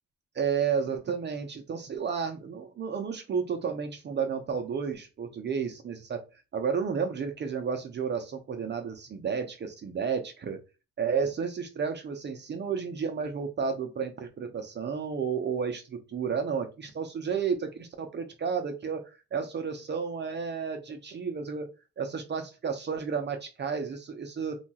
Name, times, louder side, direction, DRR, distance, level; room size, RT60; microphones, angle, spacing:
voice 1, 0.3-6.2 6.5-10.6 11.0-21.7 22.0-24.6, right 6 dB, 35° right, 5 dB, 0.5 m, -32 dB
2.8 x 2.3 x 2.8 m, 0.29 s
cardioid pair, 90°, 30 cm